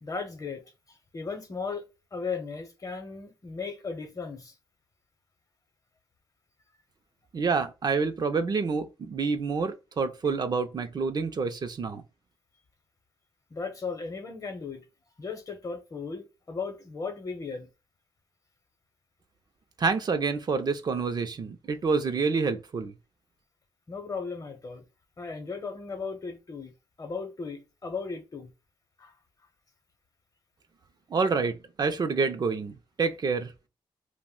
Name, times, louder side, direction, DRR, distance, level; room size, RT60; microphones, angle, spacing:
voice 1, 0.0-0.6 0.9-1.8 2.1-4.5 13.5-14.8 15.2-17.7 23.9-24.8 25.2-26.7 27.0-28.5 29.0-29.1, left 4 dB, 35° left, 0.8 m, -36 dB
voice 2, 7.3-12.0 19.8-22.9 31.1-33.5, right 4 dB, 45° right, 0.5 m, -28 dB
2.5 x 2.1 x 3.6 m
cardioid pair, 80°, 10 cm